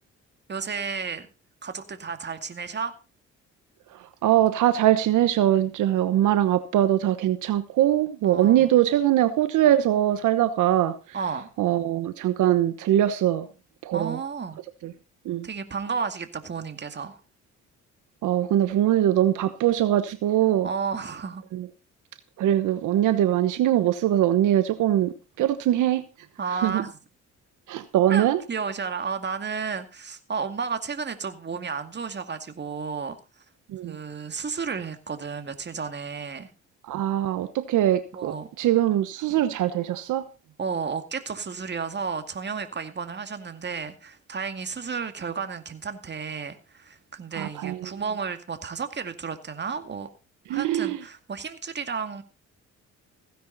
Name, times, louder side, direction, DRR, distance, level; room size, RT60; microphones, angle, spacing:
voice 1, 0.5-1.3 1.6-3.0 8.2-8.7 11.1-11.5 13.9-14.6 15.4-17.2 20.6-21.4 26.4-26.9 28.1-33.2 33.8-36.5 38.1-38.5 40.6-50.1 50.5-52.2, right 5 dB, 35° right, 2.2 m, -32 dB
voice 2, 3.9-11.0 11.6-13.5 13.8-14.2 14.8-14.9 15.2-15.5 18.2-20.7 21.5-21.7 22.4-26.0 26.6-26.8 27.7-28.4 33.7-34.0 36.9-40.2 47.4-47.9 50.5-51.0, right 12 dB, 80° right, 1.1 m, -22 dB
16.0 x 10.0 x 4.0 m
cardioid pair, 90°, 30 cm